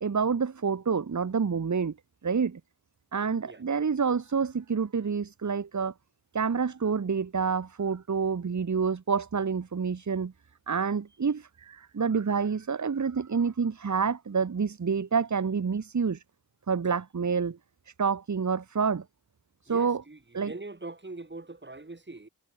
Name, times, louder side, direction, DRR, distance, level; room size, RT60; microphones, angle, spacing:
voice 1, 0.0-1.9 2.2-2.6 3.1-5.9 6.3-10.3 10.7-16.2 16.7-17.6 17.9-19.1 19.6-20.0 20.3-20.5, right 5 dB, 40° right, 1.9 m, -28 dB
voice 2, 19.7-22.3, right 2 dB, 25° right, 6.1 m, -42 dB
supercardioid pair, 45°, 43 cm